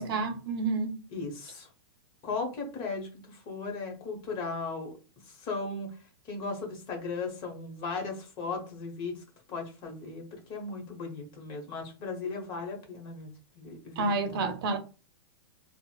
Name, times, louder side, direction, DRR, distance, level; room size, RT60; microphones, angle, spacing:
voice 1, 0.0-0.9 14.0-14.8, right 3 dB, 60° right, 0.7 m, -29 dB
voice 2, 1.1-1.7 2.2-4.9 5.2-14.4, left 4 dB, 35° left, 1.0 m, -37 dB
3.9 x 2.1 x 2.3 m
hypercardioid pair, 140°, 13 cm